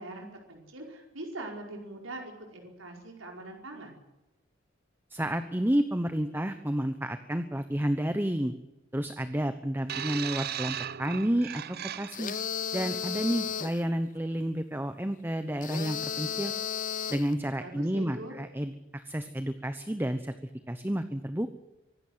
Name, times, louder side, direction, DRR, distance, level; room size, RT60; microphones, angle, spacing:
voice 1, 0.0-4.0 17.6-18.4, right 2 dB, 85° right, 1 dB, 5.1 m, -42 dB
voice 2, 5.1-8.5 8.9-11.6 11.9-12.3 12.7-16.5 17.1-21.5, right 1 dB, 10° right, 9 dB, 1.0 m, -30 dB
sound 1, 9.9-12.4 13.4-13.5, right 9 dB, 50° right, 0.6 m, -37 dB
sound 2, 12.1-13.8 15.6-17.3, left 8 dB, 40° left, 0.7 m, -34 dB
24.5 x 12.0 x 9.3 m, 0.98 s
head